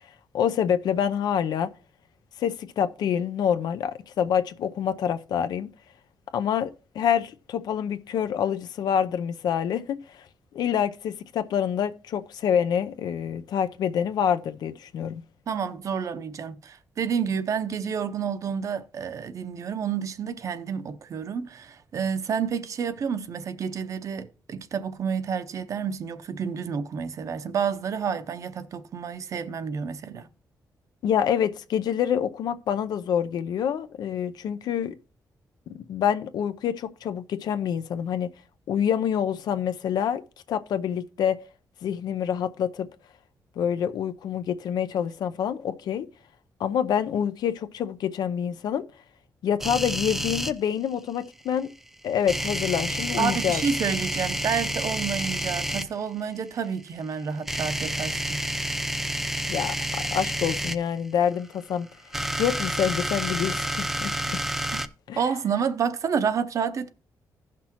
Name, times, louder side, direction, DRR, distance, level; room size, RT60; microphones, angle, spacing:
voice 1, 0.3-1.7 2.4-5.7 6.3-10.2 10.5-15.2 31.0-35.0 35.7-38.3 38.7-40.2 40.5-41.4 41.8-42.9 43.6-46.1 46.6-48.8 49.4-51.7 52.0-53.6 59.5-59.7 60.1-61.9 62.4-64.1 65.1-65.2, left 8 dB, 85° left, 0.6 m, -26 dB
voice 2, 15.5-30.3 53.2-58.4 64.7-64.8 65.2-66.9, right 6 dB, 50° right, 0.7 m, -29 dB
sound 1, 49.6-50.5 52.3-55.9 57.5-60.8 61.9-64.9, right 1 dB, 5° right, 0.5 m, -29 dB
16.0 x 6.0 x 2.9 m
wide cardioid pair, 155°, 7 cm